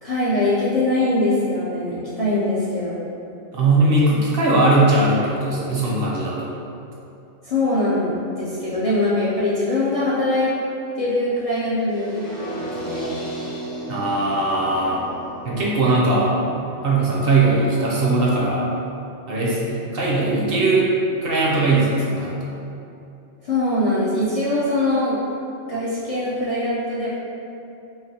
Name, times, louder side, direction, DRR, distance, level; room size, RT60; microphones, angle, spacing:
voice 1, 0.0-3.0 7.4-10.5 11.0-13.2 23.4-25.2 25.7-27.1, left 2 dB, 50° left, -11 dB, 0.4 m, -22 dB
voice 2, 3.5-6.5 13.9-15.0 15.4-16.3 16.8-18.7 19.3-20.9 21.2-22.5, right 2 dB, 65° right, -5 dB, 0.7 m, -19 dB
sound 1, 11.9-17.9, right 1 dB, 90° right, 1.6 m, -35 dB
3.2 x 2.6 x 2.7 m, 2.7 s
omnidirectional pair, 1.2 m